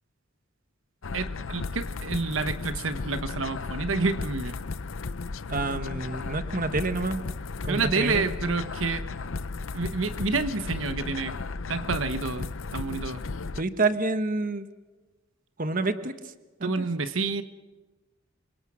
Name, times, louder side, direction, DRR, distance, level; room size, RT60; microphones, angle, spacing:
sound 1, 1.0-13.6, left 3 dB, 80° left, 0.7 m, -35 dB
voice 1, 1.1-4.6 7.7-9.0 9.7-11.3 11.7-13.2 16.6-17.4, right 4 dB, 80° right, 11 dB, 1.0 m, -29 dB
voice 2, 5.5-7.2 7.6-8.2 13.6-14.7 15.6-16.1 16.6-16.8, right 3 dB, 45° right, 10 dB, 1.2 m, -28 dB
27.5 x 24.0 x 6.2 m, 1.2 s
head